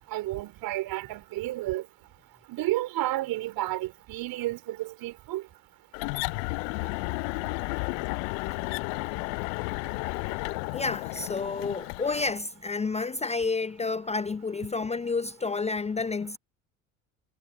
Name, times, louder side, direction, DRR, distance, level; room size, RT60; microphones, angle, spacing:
voice 1, 0.1-1.8 2.5-5.4, right 16 dB, 55° right, 4.6 m, -31 dB
sound 1, 5.9-12.4, left 33 dB, 60° left, 0.8 m, -32 dB
voice 2, 10.7-16.4, left 4 dB, 15° left, 0.7 m, -30 dB
figure-of-eight pair, 60°, 42 cm